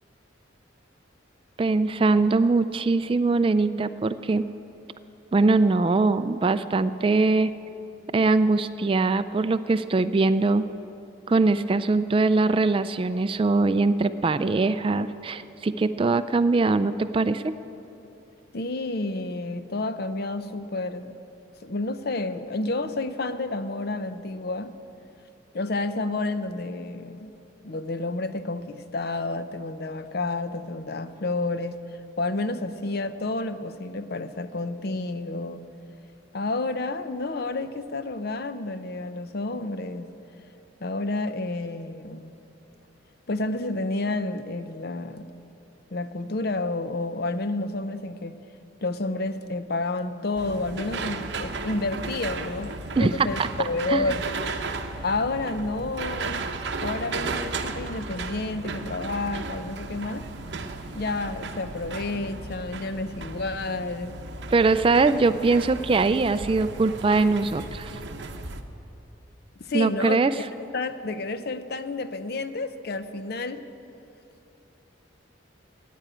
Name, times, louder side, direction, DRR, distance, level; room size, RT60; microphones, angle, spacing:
voice 1, 1.6-4.5 5.3-7.5 8.1-10.7 11.3-17.5 53.0-53.3 53.9-54.0 64.5-67.9 69.7-70.3, right 3 dB, 25° right, 13 dB, 0.3 m, -22 dB
voice 2, 18.5-21.2 21.6-24.7 25.5-27.3 27.6-31.8 32.2-35.6 36.3-40.1 40.8-42.3 43.3-45.4 45.9-48.4 48.8-54.4 55.0-56.5 56.8-60.3 60.9-64.2 69.6-70.2 70.7-73.6, left 2 dB, 55° left, 11 dB, 0.6 m, -30 dB
sound 1, 50.4-68.6, right 3 dB, 60° right, 0.8 m, -35 dB
15.0 x 9.4 x 8.8 m, 2.9 s
head